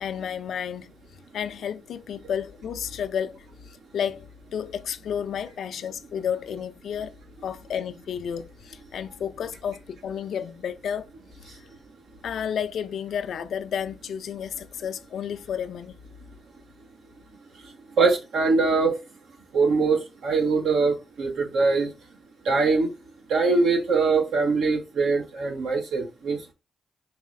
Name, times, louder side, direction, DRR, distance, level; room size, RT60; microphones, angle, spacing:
voice 1, 0.0-0.9 1.3-7.1 7.4-11.1 12.2-16.0, left 8 dB, 80° left, 0.4 m, -31 dB
voice 2, 17.6-19.0 19.5-21.9 22.4-22.9 23.3-26.5, right 4 dB, 85° right, 1.1 m, -23 dB
4.7 x 3.2 x 2.5 m
supercardioid pair, 50°, 0 cm